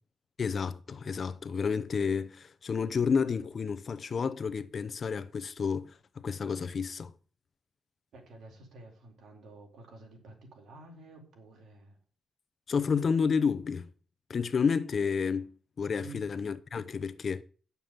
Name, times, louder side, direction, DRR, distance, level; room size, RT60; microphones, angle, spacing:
voice 1, 0.4-7.1 12.7-13.9 14.3-15.5 15.8-17.4, left 6 dB, 50° left, 0.8 m, -30 dB
voice 2, 8.1-12.0 16.0-16.2, right 2 dB, 75° right, 3.8 m, -51 dB
9.4 x 7.0 x 7.4 m
cardioid pair, 115°, 0 cm